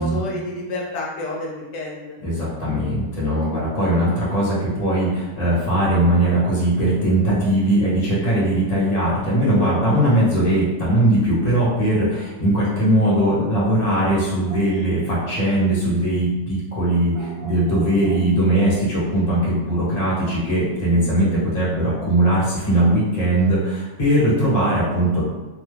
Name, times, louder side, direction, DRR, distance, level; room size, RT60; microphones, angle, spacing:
voice 1, 0.0-2.2, left 2 dB, 75° left, -3 dB, 1.2 m, -29 dB
voice 2, 2.2-25.2, right 1 dB, 30° left, -8 dB, 1.0 m, -20 dB
sound 1, 14.4-14.8 17.1-18.9, right 4 dB, 75° right, 0.5 m, -42 dB
2.9 x 2.2 x 3.3 m, 1.2 s
omnidirectional pair, 1.9 m